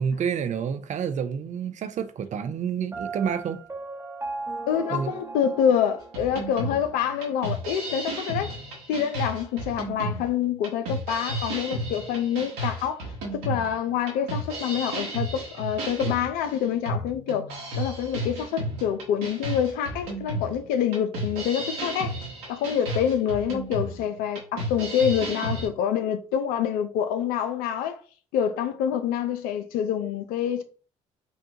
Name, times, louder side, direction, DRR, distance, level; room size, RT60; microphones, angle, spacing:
voice 1, 0.0-3.6 4.9-5.1, right 7 dB, 50° right, 0.5 m, -29 dB
Piano, 2.9-6.8, right 3 dB, 20° right, 1.2 m, -37 dB
voice 2, 4.7-8.6 8.9-17.5 17.8-22.2 22.5-28.0 28.3-30.6, left 8 dB, 80° left, 0.6 m, -26 dB
sound 1, 6.1-25.7, right 1 dB, 80° right, 1.5 m, -33 dB
5.3 x 2.3 x 2.8 m
hypercardioid pair, 60°, 15 cm